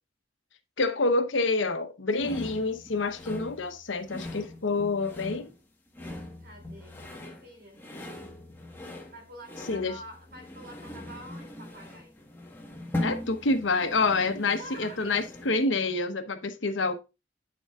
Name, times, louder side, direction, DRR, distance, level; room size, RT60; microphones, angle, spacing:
voice 1, 0.8-5.5 9.7-9.9 13.0-16.9, left 3 dB, 75° left, 1.0 m, -27 dB
sound 1, 2.2-15.7, left 1 dB, 10° left, 1.4 m, -40 dB
voice 2, 6.4-7.8 9.1-12.1 14.3-15.3, right 1 dB, 50° right, 2.8 m, -47 dB
9.2 x 7.0 x 2.4 m
head